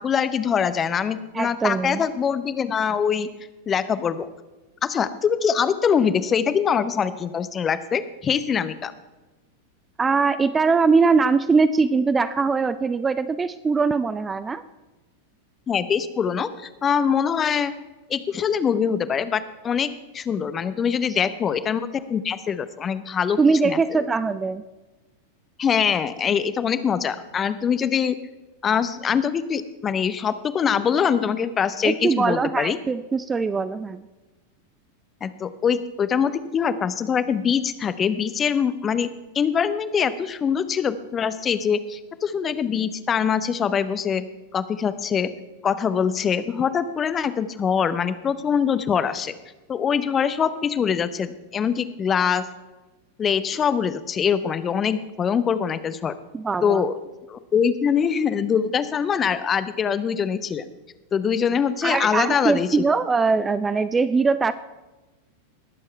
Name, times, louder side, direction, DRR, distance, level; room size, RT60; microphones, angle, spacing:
voice 1, 0.0-3.3 3.7-4.3 4.8-8.9 15.7-17.7 18.1-23.4 23.6-23.8 25.6-28.2 28.6-32.8 35.2-45.3 45.6-49.3 49.7-52.5 53.2-56.1 56.6-56.9 57.3-60.7 61.1-62.8, left 7 dB, 25° left, 14 dB, 0.7 m, -23 dB
voice 2, 1.3-2.0 10.0-14.6 23.4-24.6 31.8-34.1 56.3-56.9 61.8-64.5, right 4 dB, 15° right, 13 dB, 0.4 m, -21 dB
19.5 x 7.6 x 4.5 m, 1.1 s
figure-of-eight pair, 90°, 0 cm